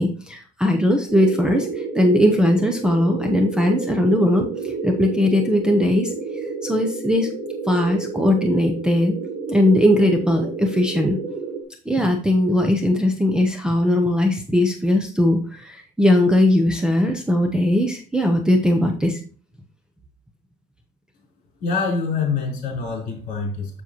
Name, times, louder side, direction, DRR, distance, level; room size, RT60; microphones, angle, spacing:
voice 1, 0.0-6.1 6.6-7.3 7.7-9.2 9.5-11.2 11.9-19.2, left 1 dB, 5° right, 0.7 m, -19 dB
sound 1, 1.1-11.6, right 4 dB, 55° right, 1.7 m, -30 dB
voice 2, 21.6-23.8, left 4 dB, 50° left, 3.9 m, -25 dB
7.2 x 6.8 x 3.0 m
cardioid pair, 155°, 17 cm